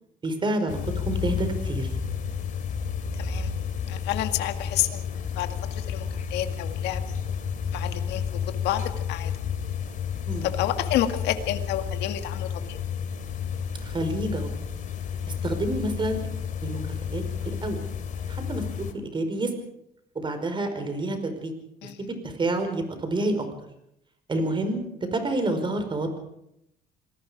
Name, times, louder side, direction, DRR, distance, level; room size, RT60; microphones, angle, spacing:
voice 1, 0.2-1.9 10.3-10.5 13.8-14.5 15.3-16.2 16.6-16.8 17.1-17.8 18.3-19.5 20.1-21.5 22.0-23.5 24.3-24.8 25.1-26.2, right 2 dB, 30° right, 7 dB, 5.0 m, -28 dB
sound 1, 0.7-18.9, left 7 dB, 50° left, 2.9 m, -31 dB
voice 2, 3.1-3.5 3.9-5.1 5.4-7.0 7.7-8.2 8.6-9.3 10.4-12.8 21.8-22.0, left 12 dB, 85° left, 7 dB, 1.9 m, -29 dB
27.0 x 19.5 x 5.2 m, 0.77 s
cardioid pair, 110°, 17 cm